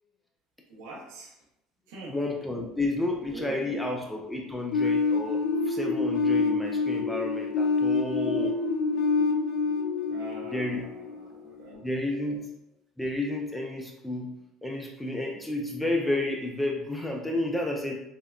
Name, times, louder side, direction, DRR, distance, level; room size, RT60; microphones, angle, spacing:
voice 1, 0.7-1.3 1.9-2.2 3.3-3.8 10.1-11.8, right 2 dB, 85° right, -2 dB, 0.7 m, -43 dB
voice 2, 2.1-8.6 10.5-10.8 11.8-12.5 13.0-14.3 14.6-18.0, left 2 dB, 5° left, 0 dB, 0.3 m, -31 dB
sound 1, 4.7-11.5, left 4 dB, 80° left, 0.4 m, -27 dB
3.5 x 2.1 x 2.2 m, 0.84 s
cardioid pair, 120°, 0 cm